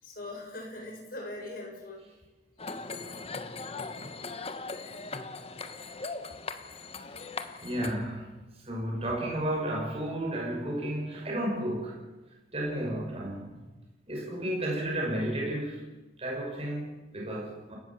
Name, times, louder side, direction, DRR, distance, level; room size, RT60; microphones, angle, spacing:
voice 1, 0.0-2.1 2.7-3.1, left 2 dB, 55° left, 1 dB, 7.0 m, -41 dB
sound 1, 2.6-8.0, left 3 dB, 35° left, 1.4 m, -39 dB
voice 2, 7.6-8.4 8.7-12.0 12.5-13.6 14.1-15.8 16.2-17.7, right 1 dB, 35° right, -1 dB, 5.9 m, -32 dB
29.5 x 16.0 x 7.4 m, 1.2 s
head